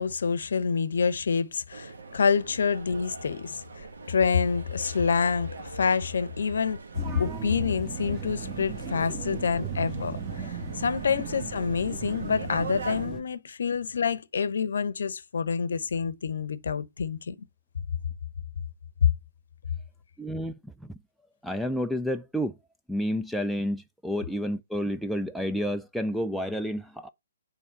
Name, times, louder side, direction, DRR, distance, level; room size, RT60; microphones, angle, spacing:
voice 1, 0.0-6.8 7.1-17.4, left 5 dB, 55° left, 0.8 m, -27 dB
sound 1, 1.7-13.1, right 4 dB, 60° right, 1.2 m, -43 dB
sound 2, 6.9-13.2, right 6 dB, 20° right, 1.2 m, -37 dB
voice 2, 20.2-20.7 21.4-22.5 22.9-27.1, equal, ahead, 0.3 m, -30 dB
8.7 x 3.5 x 5.4 m
figure-of-eight pair, 130°, 0 cm